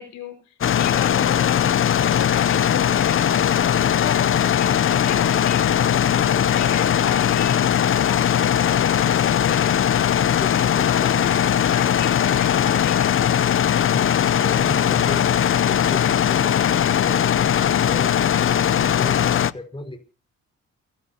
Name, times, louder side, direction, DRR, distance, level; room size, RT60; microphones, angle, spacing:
voice 1, 0.0-3.5 4.0-10.0 10.5-13.4, left 8 dB, 85° left, 5 dB, 5.5 m, -34 dB
sound 1, 0.6-19.5, left 9 dB, 45° left, 0.7 m, -19 dB
Wind instrument woodwind instrument, 2.5-9.3, right 4 dB, ahead, 5.1 m, -52 dB
voice 2, 10.4-11.1 13.9-20.1, left 1 dB, 15° left, 4 dB, 4.9 m, -36 dB
29.0 x 11.5 x 2.9 m, 0.35 s
cardioid pair, 90°, 30 cm